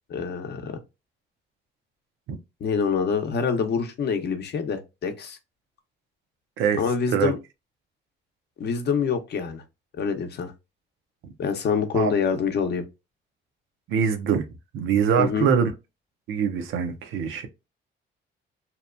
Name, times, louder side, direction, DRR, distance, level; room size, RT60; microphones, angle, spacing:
voice 1, 0.1-0.8 2.6-5.4 6.7-7.4 8.6-9.6 10.0-10.5 11.4-12.8 15.2-15.5, left 6 dB, 55° left, 0.7 m, -26 dB
voice 2, 13.9-14.5 14.7-15.7 16.3-17.5, right 7 dB, 80° right, 0.6 m, -23 dB
2.8 x 2.2 x 2.4 m
cardioid pair, 90°, 20 cm